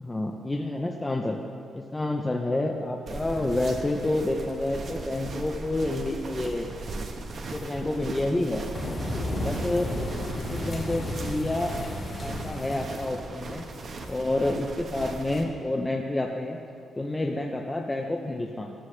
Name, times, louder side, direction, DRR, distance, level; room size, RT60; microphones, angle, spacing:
voice 1, 0.0-1.4 1.7-6.7 7.5-8.6 9.4-9.9 10.5-11.7 12.2-13.7 14.1-16.6 17.0-18.7, left 2 dB, 10° left, 2 dB, 0.5 m, -29 dB
sound 1, 3.1-15.4, right 3 dB, 40° right, 1.0 m, -38 dB
sound 2, 8.7-13.2, left 1 dB, 30° left, 2.0 m, -33 dB
14.0 x 13.0 x 3.2 m, 2.4 s
wide cardioid pair, 175°, 0 cm